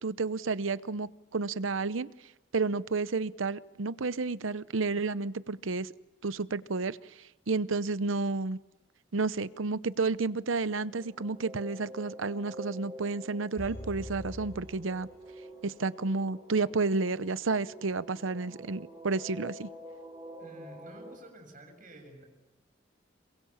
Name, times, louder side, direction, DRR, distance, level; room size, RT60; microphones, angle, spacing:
voice 1, 0.0-2.1 2.5-5.9 6.2-7.0 7.5-8.6 9.1-15.1 15.6-19.7, right 3 dB, 90° right, 16 dB, 0.8 m, -31 dB
sound 1, 10.6-21.2, equal, 20° right, 4.7 m, -48 dB
sound 2, 13.6-15.8 16.1-16.2, left 1 dB, 15° left, 5.0 m, -44 dB
voice 2, 20.4-22.3, right 1 dB, 45° right, 4 dB, 7.3 m, -50 dB
27.5 x 23.0 x 7.3 m, 1.0 s
head